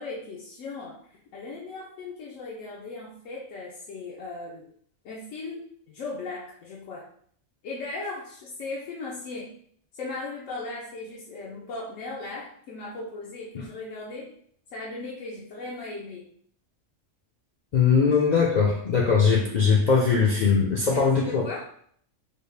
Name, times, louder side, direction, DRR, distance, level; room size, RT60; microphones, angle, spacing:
voice 1, 0.0-4.7 5.0-7.0 7.6-9.5 9.9-14.3 14.7-16.3 20.9-21.7, left 3 dB, 90° left, -4 dB, 1.0 m, -37 dB
voice 2, 17.7-21.4, left 5 dB, 65° left, -3 dB, 0.4 m, -21 dB
3.5 x 2.3 x 3.2 m, 0.63 s
omnidirectional pair, 1.3 m